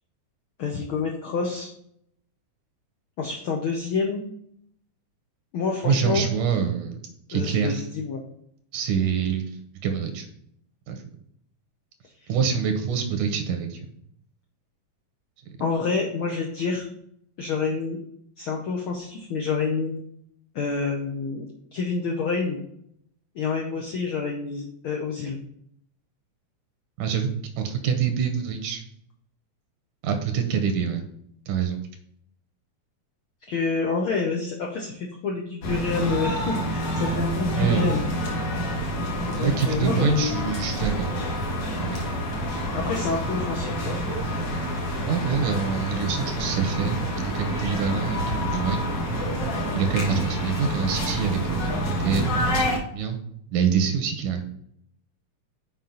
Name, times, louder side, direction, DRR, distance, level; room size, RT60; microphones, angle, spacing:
voice 1, 0.6-1.7 3.2-4.2 5.5-6.2 7.3-8.2 15.6-16.9 17.4-18.0 18.4-19.9 20.5-21.4 21.7-22.6 23.3-25.4 33.5-38.0 39.3-40.6 42.7-44.0, left 4 dB, 80° left, 0 dB, 1.2 m, -28 dB
voice 2, 5.8-7.0 7.3-7.8 8.7-10.3 10.9-11.0 12.3-13.8 27.0-28.8 30.0-31.0 31.5-31.8 37.6-37.8 39.4-41.1 41.8-42.2 45.1-48.9 49.7-53.2 53.5-54.4, right 6 dB, 80° right, 5 dB, 2.4 m, -26 dB
sound 1, 35.6-52.8, equal, 60° left, 2.4 m, -28 dB
7.3 x 5.0 x 3.9 m, 0.69 s
omnidirectional pair, 3.5 m